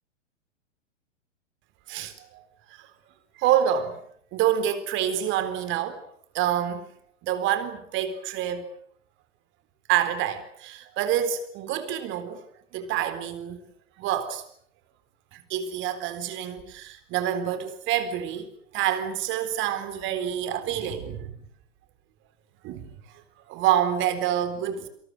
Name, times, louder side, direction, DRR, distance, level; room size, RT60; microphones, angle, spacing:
voice 1, 1.9-2.4 2.8-2.9 3.4-4.0 4.3-6.0 6.3-6.9 7.2-8.7 9.9-12.4 12.7-13.6 14.0-14.4 15.3-18.5 18.7-21.3 22.6-22.9 23.5-24.9, right 10 dB, 30° right, 4.0 m, -27 dB
28.0 x 27.0 x 6.6 m
figure-of-eight pair, 105°, 36 cm